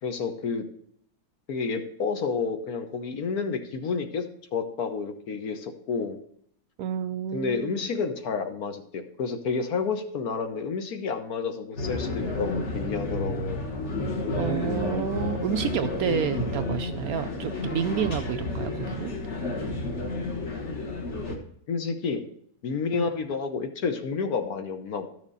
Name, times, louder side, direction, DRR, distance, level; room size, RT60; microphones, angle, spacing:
voice 1, 0.0-0.6 1.5-4.3 4.5-6.2 7.3-13.6 21.7-22.2 22.6-25.1, left 5 dB, 60° left, 7 dB, 1.4 m, -30 dB
voice 2, 6.8-7.9 14.4-19.1 22.9-23.1, right 8 dB, 70° right, 9 dB, 0.9 m, -30 dB
sound 1, 11.8-21.4, left 2 dB, 45° left, 1.6 m, -31 dB
12.0 x 6.5 x 4.0 m, 0.67 s
omnidirectional pair, 1.9 m